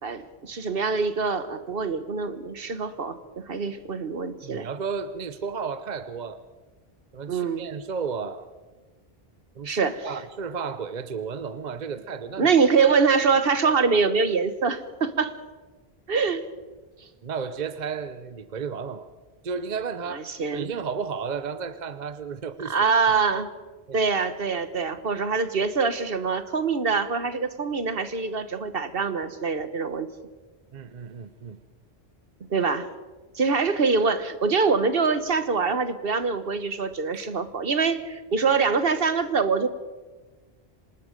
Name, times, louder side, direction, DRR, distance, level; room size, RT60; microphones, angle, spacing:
voice 1, 0.0-3.2 3.5-4.7 7.3-7.7 9.6-10.1 12.4-15.3 16.1-16.4 20.1-20.7 22.6-23.5 23.9-30.1 32.5-32.9 33.3-39.7, right 5 dB, 65° right, 12 dB, 1.4 m, -24 dB
voice 2, 4.4-6.4 7.1-8.5 9.6-9.8 10.0-12.5 17.2-19.1 19.4-20.2 20.5-22.9 23.9-24.0 30.7-31.6 37.1-37.3, right 6 dB, 45° right, 13 dB, 0.9 m, -33 dB
25.5 x 20.0 x 5.2 m, 1.3 s
omnidirectional pair, 1.1 m